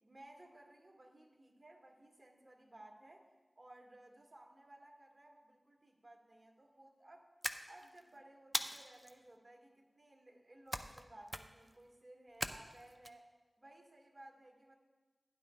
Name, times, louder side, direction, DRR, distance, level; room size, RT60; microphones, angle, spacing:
voice 1, 0.0-3.3 3.6-7.3 7.7-13.3 13.6-14.8, right 1 dB, 40° right, -1 dB, 1.8 m, -59 dB
sound 1, 7.4-8.0 8.5-9.1 10.7-11.0 11.3-11.7 12.4-13.1, equal, 5° left, 0.5 m, -40 dB
16.0 x 10.0 x 2.3 m, 1.2 s
wide cardioid pair, 70°, 0 cm